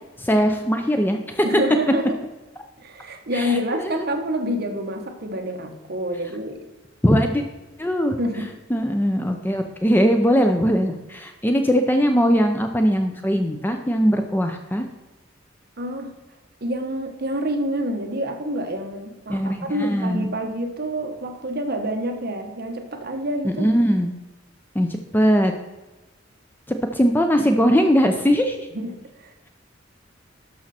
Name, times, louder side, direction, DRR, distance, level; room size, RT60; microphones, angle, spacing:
voice 1, 0.2-1.5 3.3-3.9 7.0-7.4 7.8-8.2 8.7-14.9 19.3-20.3 23.4-24.1 24.7-25.5 26.7-28.7, equal, 10° left, 5 dB, 0.6 m, -20 dB
voice 2, 1.4-2.2 2.8-6.6 8.2-8.5 15.8-16.1 16.6-23.7 28.7-29.5, equal, 55° right, 5 dB, 1.2 m, -27 dB
12.0 x 6.3 x 4.2 m, 1.1 s
head